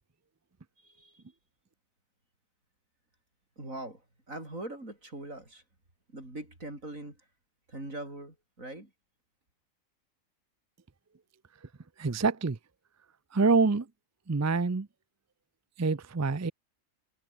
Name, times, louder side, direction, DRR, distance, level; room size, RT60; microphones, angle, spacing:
voice 1, 0.8-1.2 3.6-5.6 6.1-7.3 7.7-8.9, right 1 dB, 80° right, 8.2 m, -42 dB
voice 2, 12.0-12.6 13.3-13.9 14.3-14.9 15.8-16.5, right 4 dB, 20° right, 0.4 m, -26 dB
omnidirectional pair, 1.4 m